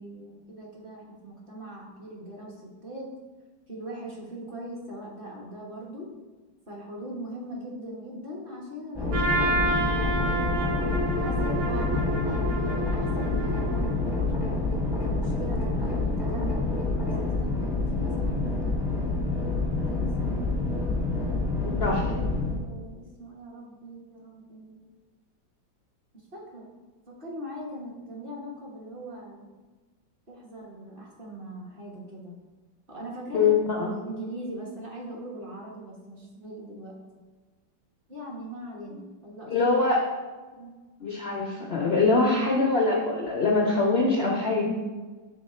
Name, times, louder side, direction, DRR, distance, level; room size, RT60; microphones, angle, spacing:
voice 1, 0.0-3.1 3.7-6.1 6.7-14.4 15.0-16.7 17.2-19.0 19.7-20.6 22.6-24.8 26.1-26.7 27.1-29.5 30.3-32.4 32.9-33.6 34.0-37.0 38.1-39.5 40.5-40.7, right 1 dB, 30° right, -4 dB, 1.3 m, -40 dB
sound 1, 8.9-22.6, left 3 dB, ahead, 0.6 m, -27 dB
Trumpet, 9.1-14.2, right 2 dB, 55° right, 1.0 m, -30 dB
voice 2, 21.6-22.2 33.3-33.9 39.5-40.1 41.0-44.7, left 3 dB, 75° left, -1 dB, 0.5 m, -23 dB
6.4 x 3.6 x 4.3 m, 1.3 s
omnidirectional pair, 2.0 m